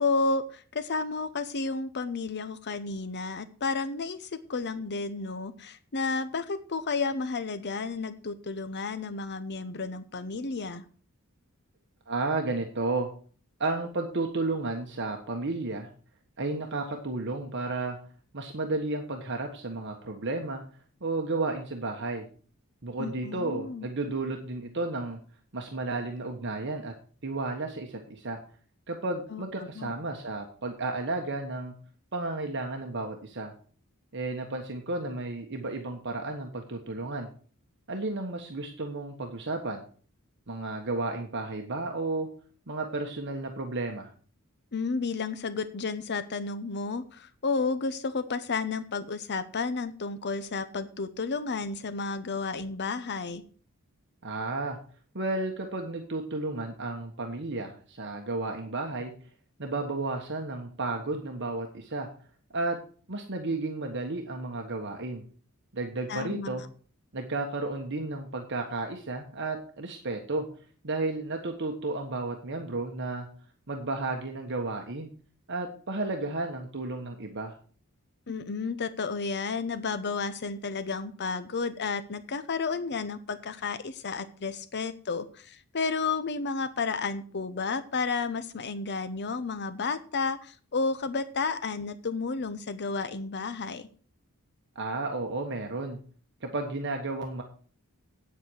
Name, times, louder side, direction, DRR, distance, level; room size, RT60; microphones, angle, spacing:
voice 1, 0.0-10.8 23.0-23.9 29.3-29.4 29.8-29.9 44.7-53.4 66.1-66.6 78.3-93.9, left 4 dB, 50° left, 12 dB, 0.8 m, -32 dB
voice 2, 12.1-13.1 13.6-15.9 16.4-18.0 18.3-20.6 21.0-22.2 22.8-25.2 25.5-26.9 27.2-28.4 28.9-31.7 32.1-33.5 34.1-37.3 37.9-39.8 40.5-42.3 42.7-44.1 54.2-54.8 55.1-59.1 59.6-62.1 62.5-62.8 63.1-65.2 65.7-66.6 67.1-70.5 70.8-73.3 73.7-75.1 75.5-77.5 94.7-96.0 96.4-97.4, right 2 dB, 55° right, 3 dB, 1.3 m, -32 dB
9.0 x 8.1 x 6.3 m, 0.43 s
head